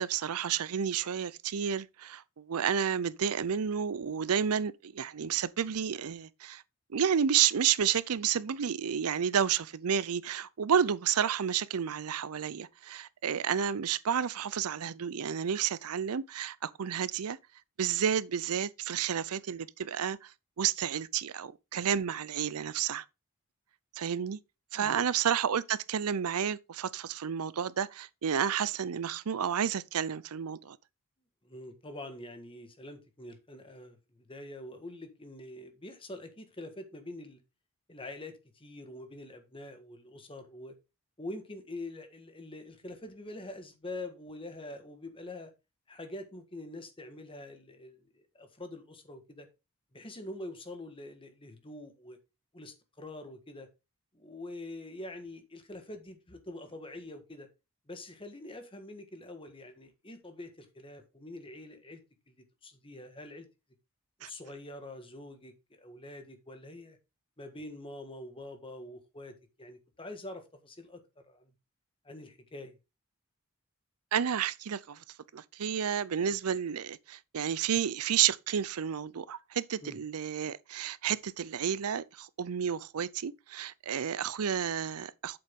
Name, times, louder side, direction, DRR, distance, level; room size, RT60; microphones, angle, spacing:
voice 1, 0.0-6.6 6.9-17.4 17.8-20.3 20.6-23.0 24.0-24.4 24.7-30.8 64.2-64.3 74.1-75.0 75.3-85.4, right 8 dB, 80° right, 0.5 m, -31 dB
voice 2, 31.4-37.4 37.9-40.7 41.2-45.5 45.9-49.5 49.9-52.2 52.5-53.7 54.1-57.5 57.9-62.0 62.3-62.4 62.6-63.5 64.2-67.0 67.4-71.5 72.0-72.7 79.8-80.0, left 1 dB, 25° left, 1.5 m, -45 dB
8.1 x 7.0 x 3.7 m
head